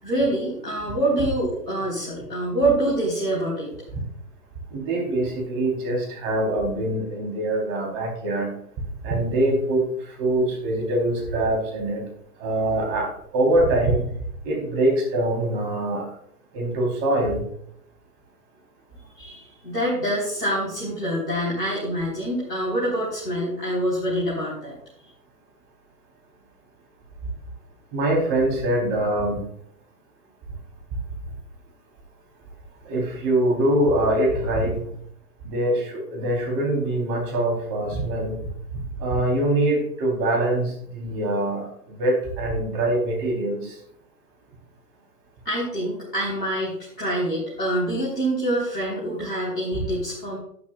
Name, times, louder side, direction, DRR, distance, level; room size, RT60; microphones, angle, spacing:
voice 1, 0.0-3.7 19.1-24.8 45.4-50.4, right 1 dB, 90° left, -6 dB, 4.1 m, -26 dB
voice 2, 4.7-8.5 9.0-12.0 12.4-14.1 14.4-16.1 16.5-17.5 27.9-29.4 32.8-34.9 35.4-38.4 39.0-43.8, right 1 dB, 25° right, 1 dB, 3.5 m, -23 dB
11.5 x 11.0 x 2.4 m, 0.67 s
figure-of-eight pair, 125°, 47 cm